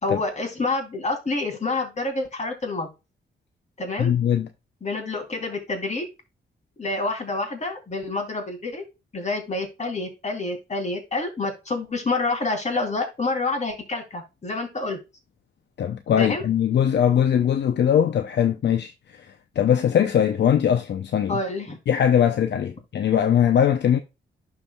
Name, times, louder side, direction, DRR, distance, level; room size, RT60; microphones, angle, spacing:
voice 1, 0.0-2.9 3.8-4.1 4.8-6.1 6.8-8.8 9.1-15.0 16.2-16.4 21.3-21.8, left 3 dB, 35° left, 3.2 m, -28 dB
voice 2, 4.0-4.5 15.8-18.9 19.6-21.4 21.9-24.0, left 9 dB, 65° left, 0.7 m, -20 dB
11.5 x 4.8 x 2.3 m
cardioid pair, 80°, 19 cm